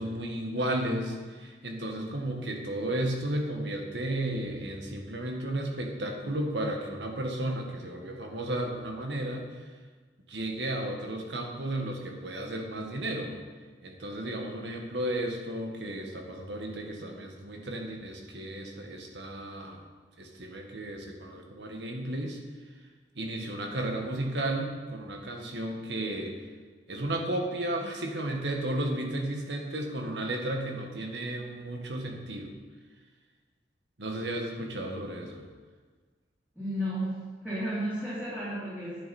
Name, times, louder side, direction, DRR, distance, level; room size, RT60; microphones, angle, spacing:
voice 1, 0.0-9.5 10.3-13.4 13.8-19.8 20.2-22.4 23.2-26.3 26.9-32.5 34.0-35.4, right 1 dB, 75° right, 2 dB, 1.7 m, -33 dB
voice 2, 36.5-39.0, equal, 10° right, -12 dB, 3.2 m, -33 dB
10.5 x 9.5 x 4.4 m, 1.4 s
head